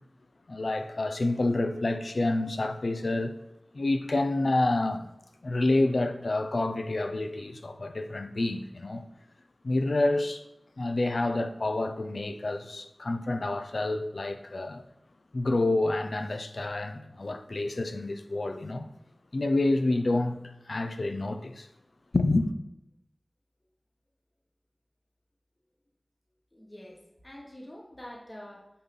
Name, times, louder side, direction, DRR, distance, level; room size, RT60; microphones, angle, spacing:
voice 1, 0.5-3.3 3.7-5.1 5.4-9.0 9.6-10.4 10.8-14.8 15.3-18.9 19.3-21.7 22.1-22.5, left 2 dB, 80° left, 0.6 m, -28 dB
voice 2, 26.5-28.7, left 1 dB, 35° left, 1.5 m, -46 dB
8.6 x 3.9 x 5.4 m
wide cardioid pair, 45°, 0 cm